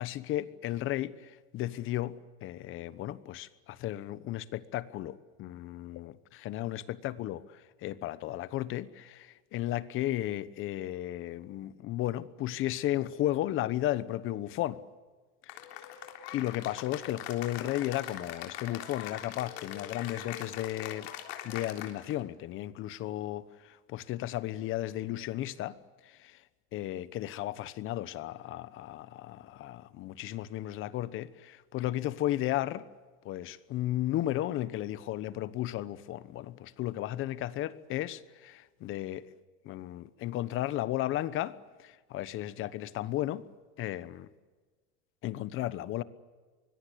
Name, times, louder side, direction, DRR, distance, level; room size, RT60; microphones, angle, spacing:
voice 1, 0.0-2.1 2.4-14.8 15.5-15.6 16.3-21.1 21.4-25.8 26.0-26.4 26.7-32.9 33.2-39.3 39.6-43.4 43.8-44.3 45.2-46.0, left 14 dB, 40° left, 1.1 m, -34 dB
Cheering / Applause, 15.5-22.2, left 11 dB, 85° left, 3.7 m, -42 dB
25.0 x 21.5 x 8.4 m
supercardioid pair, 150°, 31 cm